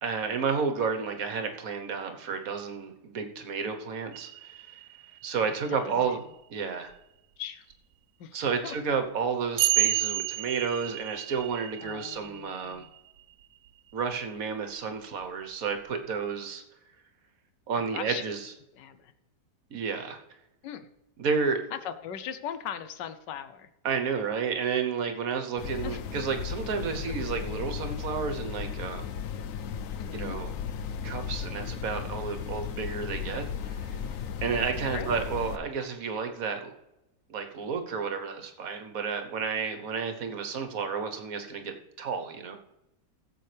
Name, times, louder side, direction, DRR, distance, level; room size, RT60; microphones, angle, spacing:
voice 1, 0.0-4.8 5.2-6.2 6.5-6.9 8.3-12.8 13.9-16.6 17.7-18.5 19.7-20.2 21.2-21.6 23.8-29.0 30.1-30.5 31.0-34.0 34.4-36.7 37.3-42.6, right 5 dB, 55° right, 6 dB, 1.5 m, -31 dB
sound 1, 4.1-5.7 6.9-7.0 8.5-8.6 9.6-13.7 15.2-15.3, right 14 dB, 75° right, 1.2 m, -31 dB
voice 2, 5.7-6.2 7.4-7.7 8.2-8.7 11.8-12.9 17.9-18.3 18.7-19.1 20.6-20.9 21.7-23.7 25.8-26.0 30.0-30.5 34.8-35.5, left 9 dB, 85° left, 11 dB, 1.5 m, -39 dB
sound 2, 25.6-35.6, left 7 dB, 65° left, 0.9 m, -35 dB
15.0 x 7.6 x 3.4 m, 0.91 s
omnidirectional pair, 1.9 m